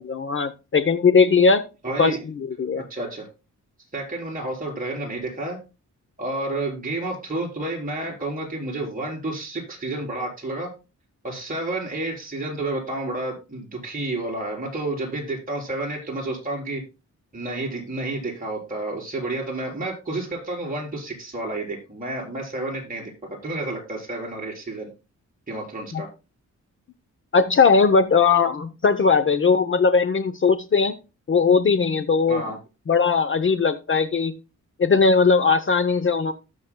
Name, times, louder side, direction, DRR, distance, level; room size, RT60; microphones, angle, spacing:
voice 1, 0.1-1.7 2.0-2.8 25.9-26.0 27.3-30.9 31.3-32.5 32.9-34.3 34.8-36.3, left 5 dB, 40° left, 11 dB, 0.7 m, -19 dB
voice 2, 1.8-2.2 2.9-3.3 3.9-5.6 6.2-10.7 11.2-16.8 17.3-23.1 23.4-24.9 25.5-26.1 32.3-32.6, right 2 dB, 25° right, -2 dB, 4.0 m, -30 dB
18.5 x 6.5 x 2.2 m, 0.30 s
wide cardioid pair, 140°, 31 cm